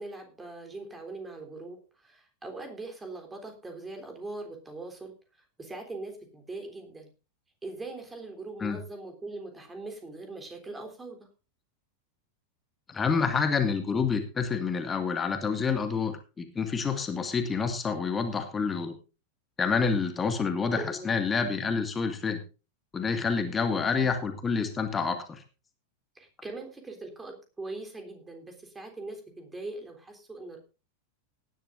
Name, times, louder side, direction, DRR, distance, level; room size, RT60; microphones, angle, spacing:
voice 1, 0.0-5.1 5.6-7.1 7.6-11.3 20.8-21.2 26.2-30.6, right 2 dB, 10° right, 4 dB, 3.5 m, -41 dB
voice 2, 12.9-18.9 19.6-22.4 22.9-25.4, left 5 dB, 20° left, 7 dB, 2.0 m, -28 dB
18.0 x 11.0 x 2.6 m, 0.32 s
figure-of-eight pair, 90°, 0 cm